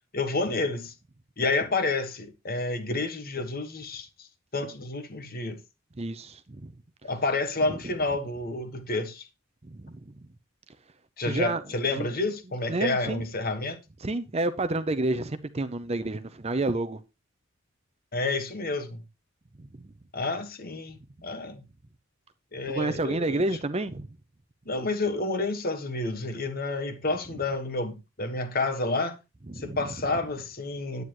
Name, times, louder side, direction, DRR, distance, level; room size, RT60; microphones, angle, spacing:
voice 1, 0.1-0.9 1.4-4.3 4.5-5.6 7.0-9.3 11.2-13.8 18.1-19.0 20.1-21.6 22.5-23.4 24.6-29.2 29.5-31.0, left 3 dB, 40° left, 1.4 m, -29 dB
voice 2, 6.0-6.7 9.7-10.0 11.2-11.6 11.9-12.1 12.7-13.2 14.0-17.0 19.6-19.9 22.7-24.1 29.5-29.8, right 2 dB, 30° right, 0.6 m, -29 dB
9.7 x 9.4 x 3.0 m
head